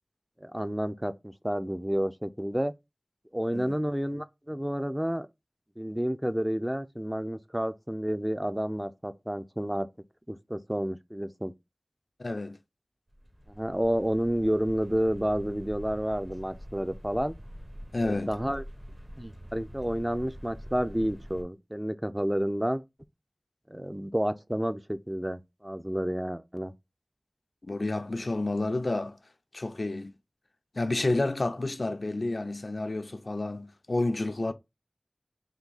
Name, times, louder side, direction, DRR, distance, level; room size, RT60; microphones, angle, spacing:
voice 1, 0.4-2.7 3.3-5.3 5.8-9.9 10.3-11.5 13.5-17.3 18.0-18.6 19.2-22.8 23.7-26.7, equal, 15° right, 0.4 m, -30 dB
voice 2, 12.2-12.6 17.9-18.3 27.6-29.2 29.5-30.1 30.7-34.5, left 2 dB, 80° left, 0.4 m, -30 dB
sound 1, 13.1-21.4, equal, 40° right, 1.0 m, -45 dB
3.6 x 2.7 x 3.9 m
wide cardioid pair, 40°, 0 cm